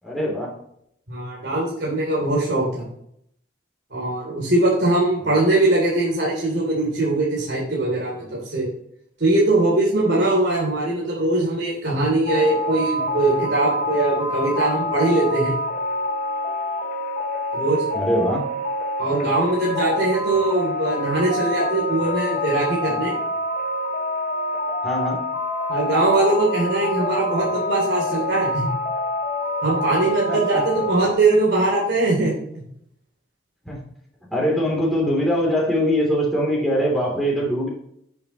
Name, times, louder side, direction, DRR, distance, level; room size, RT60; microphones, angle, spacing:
voice 1, 0.0-0.6 5.2-5.4 17.9-18.5 24.8-25.3 30.3-30.6 33.6-33.9 34.3-37.7, equal, ahead, -4 dB, 3.1 m, -22 dB
voice 2, 1.1-2.9 3.9-8.7 9.2-15.5 17.5-17.8 19.0-23.1 25.7-28.7 29.6-32.6, right 2 dB, 65° right, -4 dB, 3.2 m, -21 dB
sound 1, 12.3-31.1, left 1 dB, 40° left, 1.1 m, -26 dB
10.5 x 8.1 x 3.1 m, 0.72 s
head